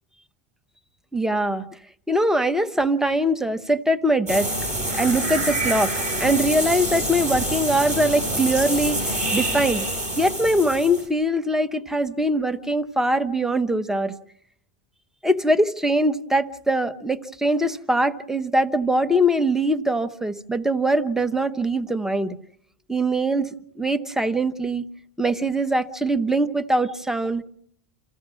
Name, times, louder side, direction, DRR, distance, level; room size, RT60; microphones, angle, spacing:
voice 1, 1.1-1.6 2.1-4.5 5.0-5.9 6.2-9.9 10.2-14.1 15.2-22.3 22.9-23.5 23.8-24.8 25.2-27.4, right 1 dB, ahead, 8 dB, 0.7 m, -22 dB
sound 1, 4.3-11.1, right 1 dB, 55° right, 6.5 m, -26 dB
27.5 x 15.5 x 6.3 m, 0.69 s
omnidirectional pair, 1.1 m